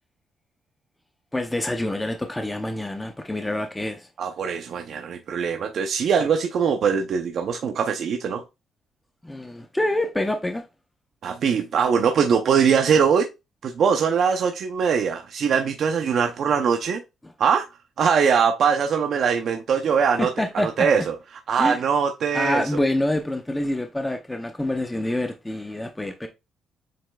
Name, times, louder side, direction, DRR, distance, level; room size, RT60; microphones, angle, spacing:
voice 1, 1.3-4.1 9.2-10.6 20.2-20.9 21.6-21.8 22.3-26.3, left 1 dB, 10° left, 0.6 m, -26 dB
voice 2, 4.2-8.4 11.2-13.3 13.6-17.0 17.4-17.7 18.0-20.3 20.5-21.1 21.5-22.8, right 6 dB, 65° right, 0.6 m, -22 dB
7.5 x 3.1 x 2.3 m
cardioid pair, 90°, 0 cm